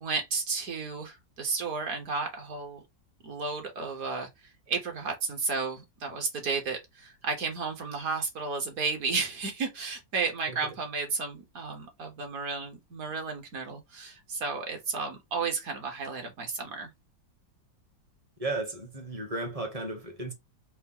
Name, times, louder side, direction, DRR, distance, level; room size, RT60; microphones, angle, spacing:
voice 1, 0.0-2.8 3.2-4.3 4.7-16.9, right 4 dB, 60° right, 1.2 m, -33 dB
voice 2, 18.4-20.3, right 2 dB, 35° right, 0.6 m, -34 dB
4.4 x 2.0 x 3.5 m
omnidirectional pair, 2.0 m